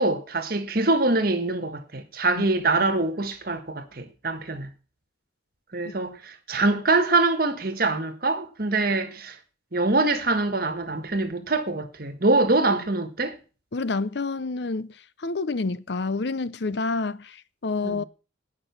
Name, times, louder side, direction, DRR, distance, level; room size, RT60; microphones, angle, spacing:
voice 1, 0.0-4.7 5.7-9.3 9.7-13.4 17.8-18.0, right 2 dB, 50° right, 1.6 m, -24 dB
voice 2, 13.7-14.9 15.2-18.0, left 3 dB, 60° left, 0.6 m, -28 dB
18.0 x 6.1 x 6.0 m
head